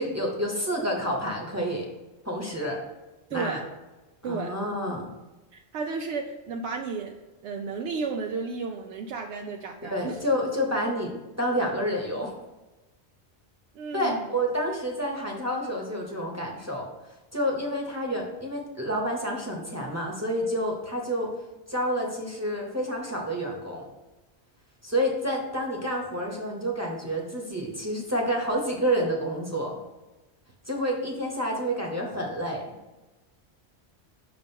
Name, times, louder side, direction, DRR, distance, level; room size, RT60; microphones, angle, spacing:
voice 1, 0.0-1.9 2.2-2.8 3.3-3.6 4.2-5.1 9.8-11.1 11.4-12.3 13.9-16.9 17.3-21.3 21.7-23.9 24.8-29.8 30.7-32.7, equal, 15° right, -1 dB, 0.9 m, -29 dB
voice 2, 3.3-3.6 4.2-4.5 5.5-7.1 7.4-10.2 13.7-14.3, right 4 dB, 80° right, 2 dB, 0.9 m, -33 dB
6.1 x 3.0 x 5.3 m, 1.1 s
omnidirectional pair, 1.1 m